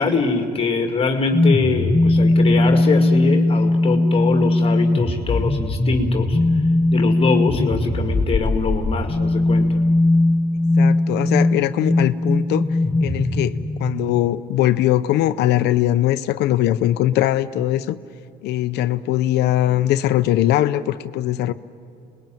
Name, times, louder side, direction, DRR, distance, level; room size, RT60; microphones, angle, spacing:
voice 1, 0.0-6.4 6.9-9.7, left 4 dB, 35° left, 5 dB, 2.2 m, -23 dB
sound 1, 1.3-14.2, left 2 dB, 10° left, 1.9 m, -19 dB
voice 2, 10.8-12.6 13.0-18.0 18.4-21.5, left 13 dB, 80° left, 11 dB, 0.7 m, -20 dB
27.5 x 21.0 x 9.1 m, 2.5 s
cardioid pair, 110°, 17 cm